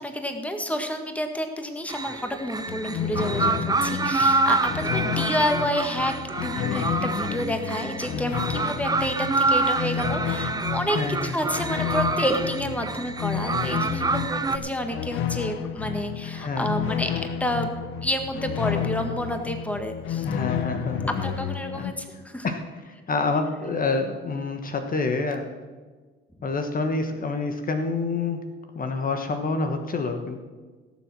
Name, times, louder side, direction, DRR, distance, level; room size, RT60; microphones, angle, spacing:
voice 1, 0.0-17.7 18.0-20.3 21.2-22.5, equal, 5° left, 6 dB, 1.7 m, -29 dB
sound 1, 1.9-14.6, right 3 dB, 20° right, 0.8 m, -27 dB
sound 2, 2.7-21.9, left 9 dB, 90° left, 0.8 m, -31 dB
voice 2, 10.9-11.3 16.3-16.9 20.2-21.2 21.7-21.8 22.4-25.5 26.4-28.4 28.7-30.4, left 3 dB, 45° left, 6 dB, 1.3 m, -27 dB
16.5 x 7.4 x 6.1 m, 1.4 s
cardioid pair, 90°, 20 cm